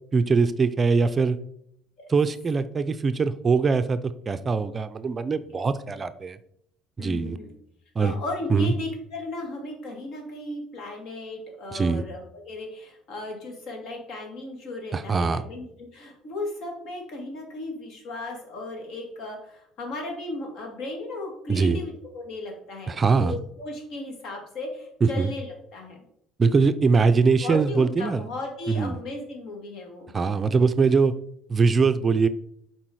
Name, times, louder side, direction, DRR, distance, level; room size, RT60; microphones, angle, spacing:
voice 1, 0.1-1.4 2.1-6.4 7.0-7.4 8.0-8.1 8.5-8.7 11.7-12.0 14.9-15.4 21.5-21.8 22.9-23.4 25.0-25.3 26.4-28.2 28.7-29.0 30.1-31.1 31.5-32.3, right 4 dB, 25° right, 11 dB, 0.4 m, -22 dB
voice 2, 7.0-7.5 8.0-26.0 27.4-30.1, left 2 dB, 65° left, 1 dB, 2.4 m, -36 dB
7.4 x 4.5 x 4.7 m, 0.70 s
cardioid pair, 115°, 0 cm